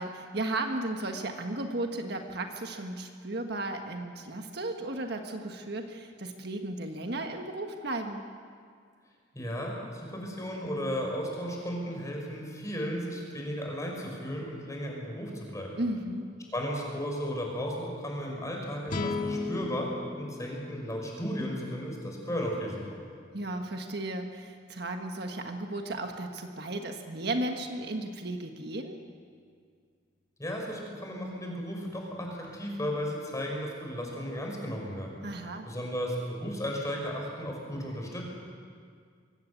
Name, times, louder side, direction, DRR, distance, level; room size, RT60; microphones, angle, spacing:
voice 1, 0.0-8.3 15.8-16.3 23.3-29.0 35.2-35.7, right 2 dB, 60° right, 4 dB, 1.5 m, -35 dB
voice 2, 9.3-15.8 16.5-23.0 30.4-35.1 35.6-38.2, equal, 15° left, 0 dB, 5.2 m, -35 dB
sound 1, 18.9-22.2, left 3 dB, 45° left, 2.0 m, -36 dB
23.5 x 17.5 x 8.3 m, 2.1 s
head